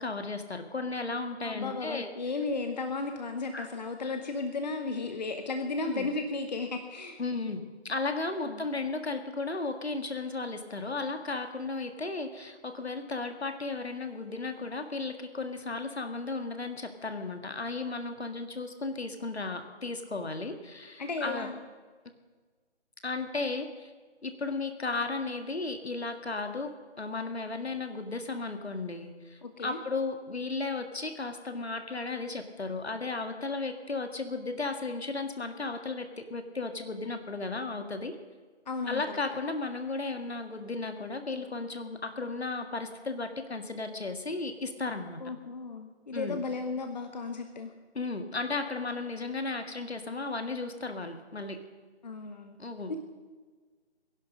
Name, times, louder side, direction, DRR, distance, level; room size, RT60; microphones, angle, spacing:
voice 1, 0.0-2.1 3.5-3.7 5.8-6.1 7.2-21.5 23.0-23.9 24.2-38.2 38.9-45.2 46.1-46.4 47.9-51.6 52.6-52.9, left 3 dB, 65° left, 7 dB, 2.0 m, -35 dB
voice 2, 1.4-7.2 8.4-8.6 21.0-21.6 29.4-29.8 38.7-39.2 45.2-47.7 52.0-52.6 52.9-53.0, left 3 dB, 40° left, 6 dB, 1.1 m, -34 dB
19.5 x 11.0 x 6.5 m, 1.5 s
figure-of-eight pair, 150°, 34 cm